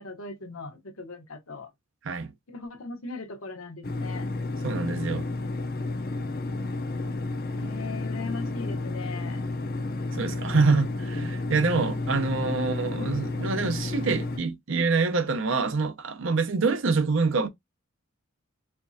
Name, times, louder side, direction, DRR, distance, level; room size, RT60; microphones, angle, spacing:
voice 1, 0.0-1.7 2.5-4.3 7.5-9.4 12.5-13.2, left 3 dB, 80° left, 1.0 m, -39 dB
sound 1, 3.8-14.4, left 2 dB, 45° left, 0.5 m, -31 dB
voice 2, 4.6-5.3 10.1-17.5, right 4 dB, 65° right, 0.7 m, -26 dB
4.4 x 2.3 x 2.7 m
head